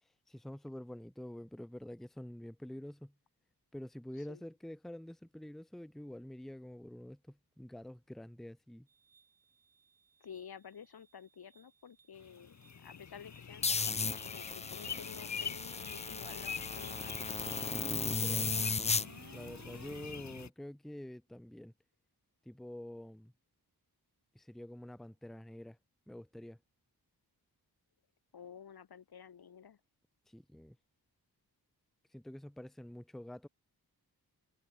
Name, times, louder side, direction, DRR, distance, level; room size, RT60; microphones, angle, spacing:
voice 1, 0.0-3.1 3.7-8.9 17.6-18.6 19.3-21.7 22.4-23.3 24.3-25.8 26.1-26.6 30.3-30.8 32.1-33.5, left 1 dB, ahead, 0.8 m, -47 dB
sound 1, 8.9-20.2, right 6 dB, 60° right, 3.5 m, -58 dB
voice 2, 10.2-17.1 28.3-29.8, left 7 dB, 70° left, 1.9 m, -51 dB
sound 2, 12.2-20.5, left 6 dB, 45° left, 1.2 m, -46 dB
sound 3, 13.6-19.1, left 4 dB, 20° left, 0.3 m, -35 dB
wide cardioid pair, 125°, 39 cm